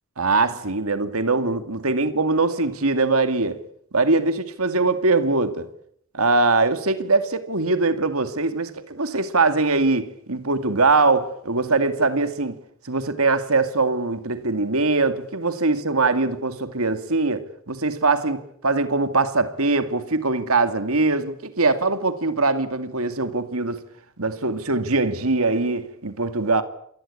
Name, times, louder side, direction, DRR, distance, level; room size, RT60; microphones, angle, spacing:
voice 1, 0.2-3.6 3.9-5.7 6.1-12.6 12.8-23.8 24.2-26.6, right 3 dB, 80° right, 2.3 m, -22 dB
27.5 x 20.0 x 8.6 m
head